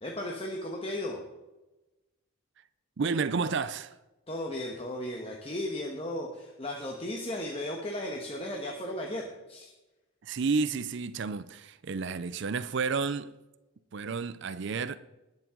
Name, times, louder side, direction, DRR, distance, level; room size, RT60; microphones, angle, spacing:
voice 1, 0.0-1.2 4.3-9.7, left 1 dB, 25° left, 1.3 m, -35 dB
voice 2, 3.0-4.0 10.2-13.3 13.9-15.0, right 4 dB, 55° right, 0.5 m, -31 dB
20.0 x 7.4 x 3.8 m
head